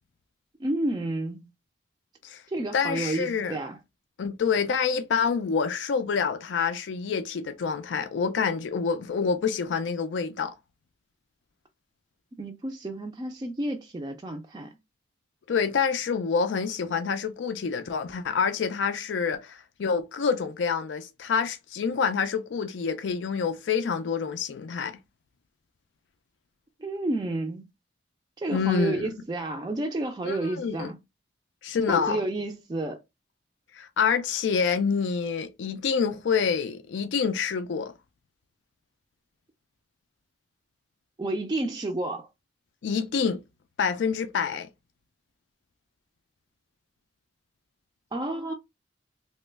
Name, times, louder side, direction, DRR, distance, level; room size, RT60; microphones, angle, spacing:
voice 1, 0.6-1.5 2.5-3.8 12.4-14.8 26.8-27.7 28.4-31.0 31.9-33.0 41.2-42.3 48.1-48.5, right 2 dB, 20° right, 0.3 m, -30 dB
voice 2, 2.7-3.6 4.2-10.5 15.5-25.0 28.5-29.1 30.2-30.9 31.6-32.2 33.8-37.9 42.8-43.4 43.8-44.7, left 6 dB, 85° left, 0.4 m, -27 dB
3.0 x 2.1 x 3.2 m
head